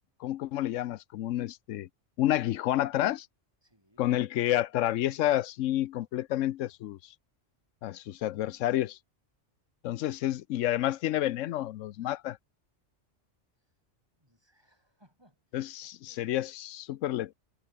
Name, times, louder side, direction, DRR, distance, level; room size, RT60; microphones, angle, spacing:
voice 1, 0.2-1.9 2.2-3.3 4.0-7.0 7.8-9.0 9.8-12.4 15.5-17.3, left 13 dB, 85° left, 1.0 m, -29 dB
voice 2, 3.6-4.1 10.2-10.3 13.6-13.7 14.2-16.4, equal, 20° right, 8.2 m, -66 dB
omnidirectional pair, 1.3 m